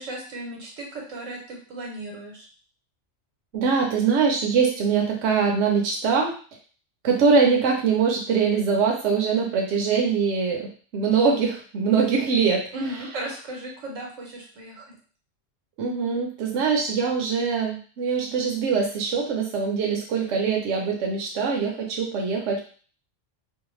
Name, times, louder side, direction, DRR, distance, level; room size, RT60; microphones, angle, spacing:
voice 1, 0.0-2.5 12.7-14.9, right 1 dB, 90° right, 0 dB, 1.2 m, -35 dB
voice 2, 3.5-6.3 7.0-12.7 15.8-22.6, right 5 dB, 70° right, 0 dB, 0.9 m, -23 dB
2.6 x 2.1 x 3.0 m, 0.41 s
omnidirectional pair, 1.3 m